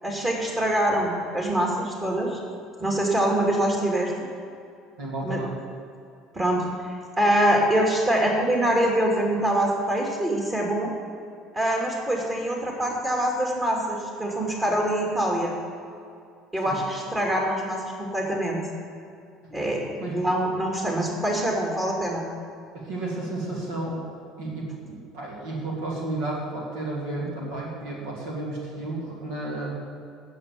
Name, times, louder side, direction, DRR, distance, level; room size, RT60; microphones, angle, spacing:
voice 1, 0.0-2.4 2.8-4.1 5.2-5.4 6.3-6.6 7.2-10.9 11.5-15.5 16.5-18.6 19.5-22.2, right 1 dB, 25° right, -1 dB, 2.6 m, -24 dB
voice 2, 5.0-5.6 16.6-16.8 20.0-20.1 22.7-24.0 24.4-29.7, right 2 dB, 75° right, -3 dB, 2.6 m, -32 dB
9.9 x 6.9 x 9.2 m, 2.4 s
hypercardioid pair, 70°, 0 cm